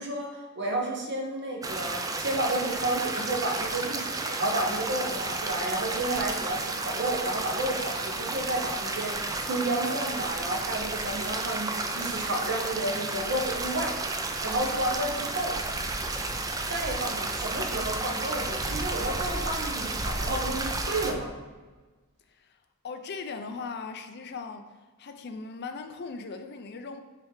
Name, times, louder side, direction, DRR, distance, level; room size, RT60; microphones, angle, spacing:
voice 1, 0.0-13.9 14.4-15.5 16.7-21.3, right 1 dB, 55° right, 1.1 m, -31 dB
sound 1, 1.6-21.1, right 3 dB, 15° right, 0.3 m, -32 dB
voice 2, 22.8-24.7 25.0-27.0, left 4 dB, 50° left, 0.5 m, -38 dB
5.9 x 3.3 x 4.8 m
head